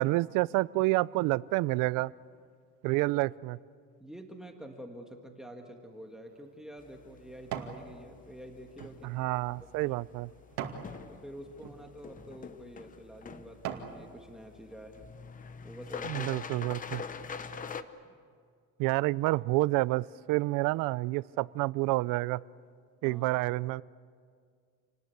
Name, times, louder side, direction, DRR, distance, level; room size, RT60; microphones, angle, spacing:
voice 1, 0.0-2.1 2.8-3.6 9.0-10.3 16.0-17.0 18.8-22.4 23.0-23.8, right 20 dB, 80° right, 20 dB, 0.6 m, -29 dB
voice 2, 4.0-9.2 9.6-9.9 11.1-15.1 15.6-16.3 18.0-18.2 23.0-23.2, right 1 dB, ahead, 3 dB, 1.6 m, -48 dB
sound 1, 6.0-7.8 8.3-10.9 11.5-11.8 12.4-12.6 13.1-14.0 14.5-14.6, right 9 dB, 65° right, 2.4 m, -42 dB
sound 2, 6.8-17.8, left 5 dB, 25° left, 0.9 m, -45 dB
28.5 x 19.5 x 8.2 m, 2.1 s
cardioid pair, 150°, 31 cm